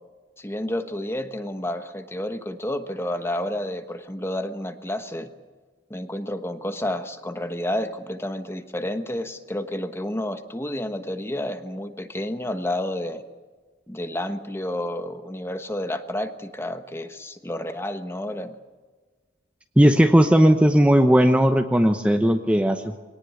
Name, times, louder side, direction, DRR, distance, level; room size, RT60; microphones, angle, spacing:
voice 1, 0.4-5.3 5.9-13.2 13.9-18.6, left 1 dB, 15° left, 8 dB, 1.2 m, -30 dB
voice 2, 19.8-23.0, equal, 5° right, 6 dB, 0.9 m, -17 dB
23.0 x 18.5 x 8.4 m, 1.4 s
head